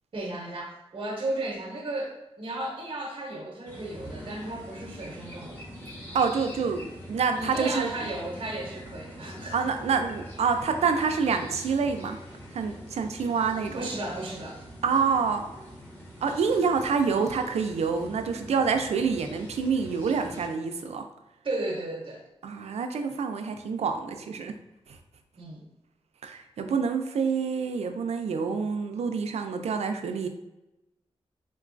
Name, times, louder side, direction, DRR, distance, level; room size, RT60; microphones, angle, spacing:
voice 1, 0.1-5.6 7.3-9.7 13.7-14.6 21.4-22.2 25.4-25.6, right 2 dB, 50° right, -1 dB, 0.7 m, -34 dB
sound 1, 3.7-20.5, equal, 15° left, 1.1 m, -44 dB
voice 2, 6.1-7.9 9.5-12.2 12.5-13.8 14.8-15.4 16.2-21.0 22.4-24.5 26.2-30.3, right 5 dB, 75° right, 6 dB, 0.4 m, -27 dB
3.7 x 2.2 x 2.4 m, 0.95 s
cardioid pair, 65°, 11 cm